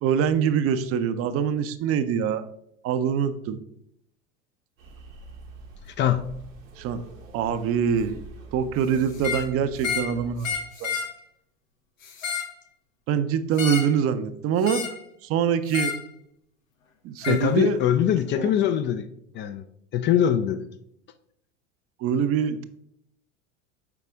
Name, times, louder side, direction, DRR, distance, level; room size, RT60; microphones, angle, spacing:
voice 1, 0.0-2.4 2.8-3.6 6.8-7.0 7.3-8.2 8.5-10.5 10.8-10.9 13.1-14.8 15.2-15.9 17.0-17.8 18.4-18.5 22.0-22.6, right 7 dB, 35° right, 11 dB, 0.5 m, -24 dB
sound 1, 4.8-10.6, right 3 dB, 85° right, 1.3 m, -45 dB
voice 2, 6.0-6.3 17.3-19.1 19.3-19.6 19.9-20.7, left 10 dB, 30° left, 10 dB, 0.4 m, -22 dB
sound 2, 9.1-9.5 9.8-10.1 10.4-11.1 12.0-12.5 13.6-14.0 14.6-15.0 15.7-16.0 17.2-17.4, left 6 dB, 80° left, 1.2 m, -30 dB
6.9 x 4.9 x 3.5 m, 0.74 s
hypercardioid pair, 80°, 39 cm